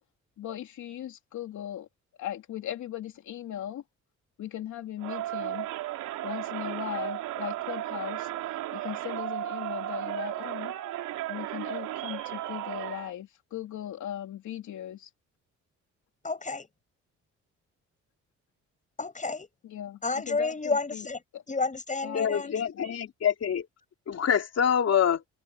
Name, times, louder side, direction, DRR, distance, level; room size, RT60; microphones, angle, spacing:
voice 1, 0.4-1.9 2.2-3.8 4.4-5.7 6.2-8.3 8.7-10.7 11.3-15.1 19.7-20.0 20.3-20.5 20.9-21.0 21.3-21.4 22.0-22.9, left 11 dB, 75° left, 2.9 m, -38 dB
Crowd, 5.0-13.1, right 14 dB, 90° right, 3.7 m, -34 dB
voice 2, 16.2-16.7 19.0-19.5 20.0-21.2 21.5-22.7, left 3 dB, 25° left, 7.3 m, -31 dB
voice 3, 22.1-23.7 24.1-25.2, left 8 dB, 55° left, 4.3 m, -26 dB
cardioid pair, 90°, 30 cm